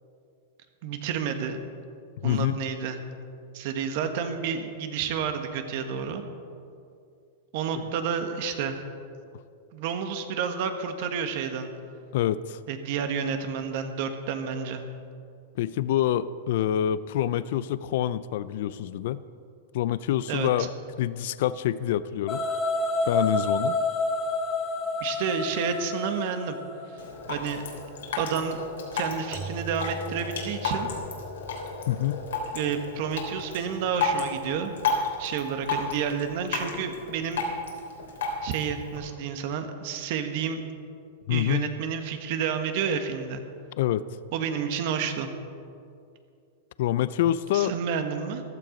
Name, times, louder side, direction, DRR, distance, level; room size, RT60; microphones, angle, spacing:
voice 1, 0.8-1.6 2.2-3.0 3.5-6.2 7.5-8.8 9.7-11.7 12.7-14.8 20.3-20.7 25.0-26.6 26.9-27.0 27.3-27.6 28.2-30.9 32.5-34.7 35.2-37.4 38.4-40.6 41.3-43.4 44.3-45.3 47.5-48.4, right 7 dB, 55° right, 7 dB, 1.6 m, -30 dB
voice 2, 2.2-2.6 12.1-12.6 15.6-19.2 19.7-20.7 21.0-22.5 23.1-23.8 31.9-32.2 41.3-41.7 43.8-44.1 46.8-47.7, left 12 dB, 65° left, 16 dB, 0.4 m, -26 dB
sound 1, 22.3-27.3, left 2 dB, 25° left, 1.4 m, -28 dB
Drip, 27.0-39.0, left 4 dB, 90° left, 3.3 m, -33 dB
Keyboard (musical), 29.3-33.8, right 1 dB, 10° right, 0.7 m, -43 dB
14.5 x 12.5 x 5.2 m, 2.5 s
supercardioid pair, 140°, 0 cm